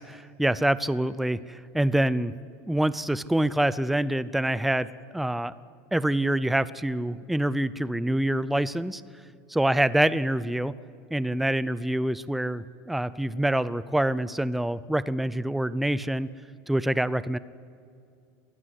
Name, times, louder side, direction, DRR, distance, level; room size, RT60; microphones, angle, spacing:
voice 1, 0.1-2.3 2.7-4.9 5.1-5.5 5.9-9.0 9.6-10.7 11.1-16.3 16.7-17.4, right 1 dB, ahead, 17 dB, 0.4 m, -26 dB
23.0 x 14.0 x 8.1 m, 2.4 s
supercardioid pair, 145°, 9 cm